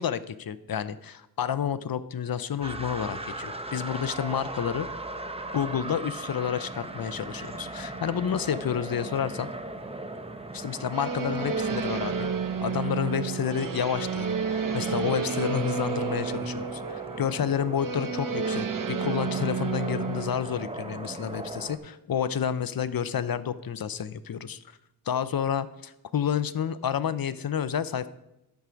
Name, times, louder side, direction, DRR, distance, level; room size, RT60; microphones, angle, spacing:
voice 1, 0.0-4.9 5.5-9.5 10.5-12.3 12.6-24.6 25.1-28.1, left 8 dB, 60° left, 14 dB, 0.5 m, -30 dB
sound 1, 2.6-21.8, right 2 dB, 15° right, 0.6 m, -38 dB
sound 2, 10.9-20.4, right 6 dB, 50° right, 0.7 m, -31 dB
12.5 x 4.7 x 5.0 m, 0.88 s
wide cardioid pair, 100°, 41 cm